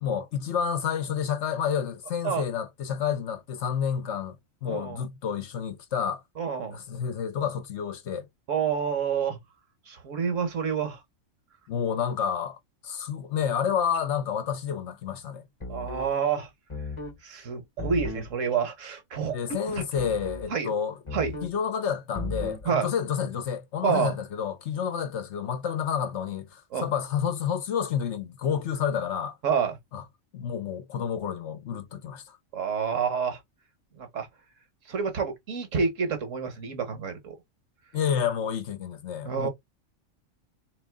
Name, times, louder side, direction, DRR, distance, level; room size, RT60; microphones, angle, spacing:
voice 1, 0.0-4.4 4.6-6.2 6.7-8.3 11.7-12.6 12.8-15.4 19.3-21.0 21.4-29.4 29.9-30.0 30.3-32.4 37.9-39.5, left 8 dB, 60° left, 1.0 m, -29 dB
voice 2, 4.7-5.0 6.4-6.8 8.5-9.4 9.9-11.0 15.7-16.5 17.2-19.4 19.8-19.9 20.5-20.7 21.1-21.4 22.6-22.9 23.8-24.1 26.7-26.8 29.4-29.8 32.5-33.4 34.0-34.3 34.9-37.4 39.2-39.5, right 6 dB, 70° right, 1.6 m, -28 dB
sound 1, 15.6-16.1 16.7-17.2 17.8-18.3 20.0-20.5 21.1-21.6 22.2-22.7, left 2 dB, 25° left, 1.0 m, -35 dB
3.6 x 3.0 x 3.5 m
omnidirectional pair, 1.4 m